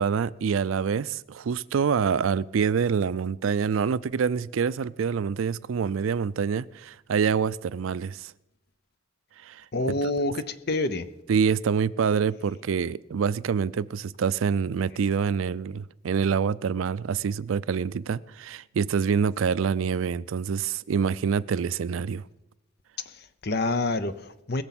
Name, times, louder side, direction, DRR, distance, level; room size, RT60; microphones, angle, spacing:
voice 1, 0.0-8.3 9.4-9.6 11.3-22.2, right 6 dB, 85° right, 0.4 m, -26 dB
voice 2, 9.7-11.1 23.1-24.6, left 2 dB, 50° left, 0.7 m, -28 dB
20.5 x 7.0 x 6.0 m
head